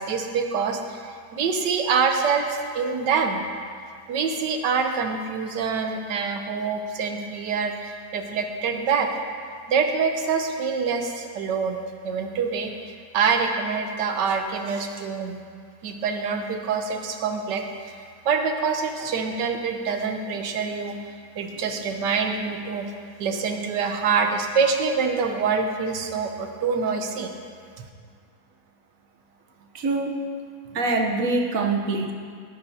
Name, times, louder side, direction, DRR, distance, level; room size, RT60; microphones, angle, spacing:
voice 1, 0.0-3.4 4.1-9.1 9.7-15.3 15.8-21.0 21.4-22.9 23.2-27.3 27.8-27.9, right 5 dB, 75° right, 4 dB, 1.5 m, -25 dB
voice 2, 29.7-30.2 30.7-32.1, right 3 dB, 55° right, 2 dB, 1.2 m, -24 dB
14.5 x 12.0 x 2.8 m, 2.1 s
omnidirectional pair, 1.9 m